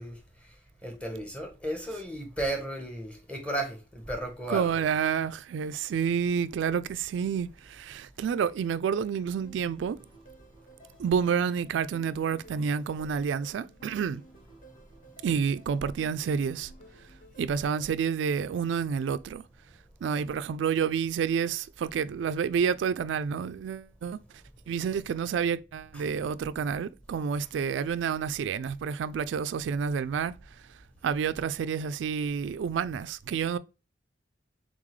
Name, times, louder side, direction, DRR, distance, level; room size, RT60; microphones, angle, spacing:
voice 1, 0.0-4.9 10.8-10.9 14.7-14.8 25.9-26.1 27.4-27.5, right 1 dB, 5° left, 1.1 m, -35 dB
voice 2, 4.5-10.0 11.0-14.2 15.2-16.7 17.4-19.4 20.0-24.2 24.7-30.4 31.0-33.6, right 7 dB, 90° right, 0.3 m, -29 dB
sound 1, 9.2-17.9, right 1 dB, 45° left, 1.6 m, -55 dB
3.9 x 3.7 x 3.1 m
head